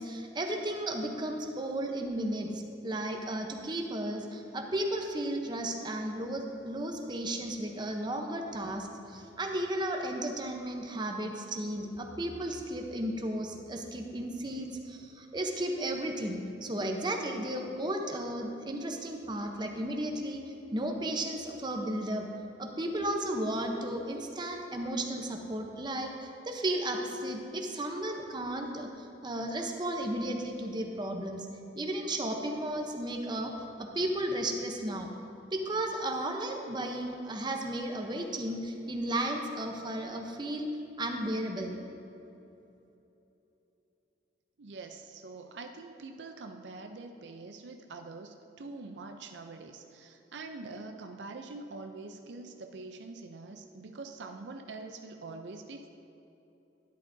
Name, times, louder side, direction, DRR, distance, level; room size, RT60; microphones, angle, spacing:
voice 1, 0.0-20.4 20.7-22.3 22.6-31.5 31.7-33.5 33.8-35.1 35.5-40.7 41.0-41.8, right 1 dB, 25° right, 3 dB, 0.8 m, -34 dB
voice 2, 44.6-55.9, right 3 dB, 70° right, 5 dB, 0.5 m, -44 dB
12.0 x 10.5 x 2.7 m, 3.0 s
head